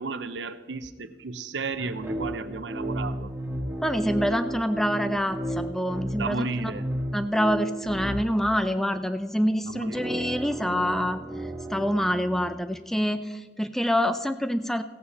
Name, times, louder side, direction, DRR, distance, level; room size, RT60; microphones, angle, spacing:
voice 1, 0.0-3.3 6.2-6.9 9.7-10.1, right 3 dB, 90° right, 12 dB, 0.7 m, -33 dB
sound 1, 1.8-8.6 9.7-12.5, right 1 dB, 15° right, 1.7 m, -33 dB
voice 2, 3.8-6.7 7.1-11.2 11.7-14.8, equal, ahead, 10 dB, 0.5 m, -26 dB
16.0 x 8.6 x 4.2 m, 1.3 s
head